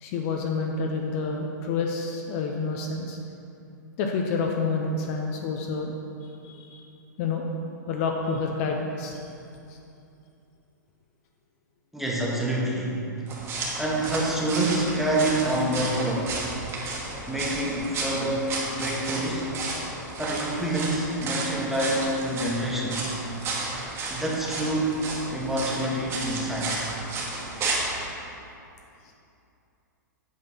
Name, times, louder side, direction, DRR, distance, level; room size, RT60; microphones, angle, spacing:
voice 1, 0.0-3.2 4.0-5.9 6.2-6.8 7.2-7.5 7.9-9.2, left 4 dB, 45° left, 1 dB, 0.8 m, -28 dB
voice 2, 11.9-13.0 13.8-16.5 17.3-19.6 20.2-23.2 24.1-25.0 25.3-26.9 27.7-27.8, right 1 dB, ahead, -5 dB, 1.3 m, -27 dB
sound 1, 13.3-27.9, right 3 dB, 25° right, 1.5 m, -33 dB
8.4 x 4.4 x 5.5 m, 2.7 s
hypercardioid pair, 130°, 10 cm